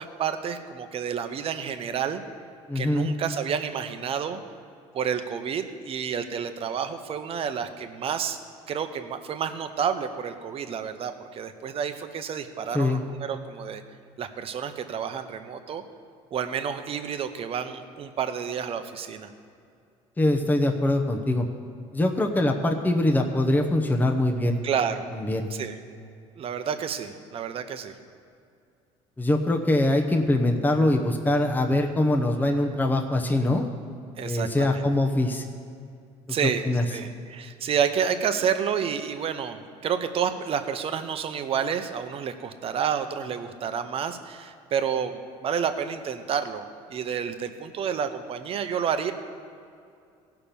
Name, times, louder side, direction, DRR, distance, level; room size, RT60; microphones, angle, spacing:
voice 1, 0.0-2.2 2.7-4.4 4.9-8.4 8.7-13.8 14.2-15.8 16.3-19.3 24.6-25.1 25.5-25.8 26.4-27.9 34.2-34.8 36.3-36.6 36.9-46.6 46.9-49.1, right 7 dB, 45° right, 8 dB, 0.8 m, -29 dB
voice 2, 2.7-3.1 12.7-13.0 20.2-21.4 21.9-24.6 25.1-25.5 29.2-33.7 34.2-35.4 36.3-36.8, left 1 dB, 15° left, 3 dB, 0.9 m, -23 dB
16.5 x 5.9 x 6.9 m, 2.4 s
cardioid pair, 110°, 13 cm